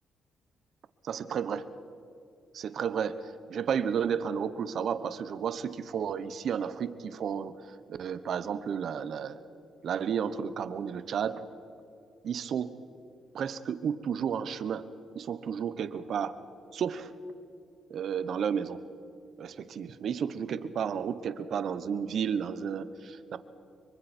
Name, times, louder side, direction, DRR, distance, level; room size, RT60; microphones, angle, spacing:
voice 1, 1.0-1.7 2.5-7.6 7.9-9.4 9.8-11.4 12.2-12.8 13.3-14.9 15.1-16.4 16.7-17.1 17.9-18.8 19.4-23.4, right 7 dB, 60° right, 13 dB, 1.2 m, -32 dB
26.0 x 23.5 x 4.5 m, 2.7 s
cardioid pair, 90°, 0 cm